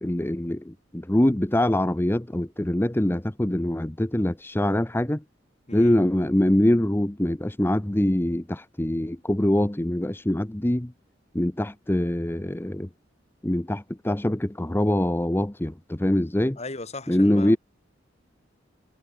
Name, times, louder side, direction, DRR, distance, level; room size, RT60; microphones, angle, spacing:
voice 1, 0.0-5.2 5.7-10.9 11.3-12.9 13.4-16.6 17.1-17.6, left 1 dB, 10° left, 0.8 m, -24 dB
voice 2, 16.6-17.6, left 2 dB, 35° left, 3.9 m, -37 dB
head